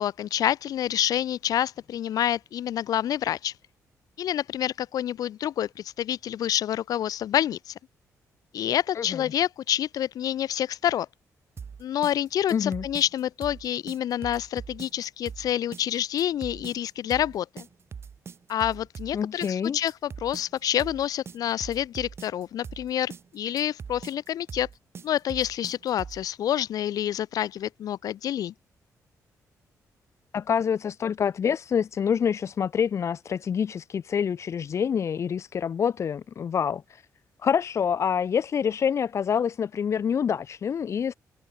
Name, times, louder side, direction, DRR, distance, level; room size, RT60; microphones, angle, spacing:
voice 1, 0.0-3.5 4.2-7.7 8.5-11.1 11.8-17.7 18.5-24.7 25.0-28.5, left 11 dB, 75° left, 1.2 m, -28 dB
sound 1, 11.6-26.3, right 6 dB, 40° right, 3.0 m, -42 dB
voice 2, 12.5-12.8 19.1-19.8 30.3-37.0 37.4-41.1, left 7 dB, 50° left, 1.8 m, -26 dB
cardioid pair, 135°, 6 cm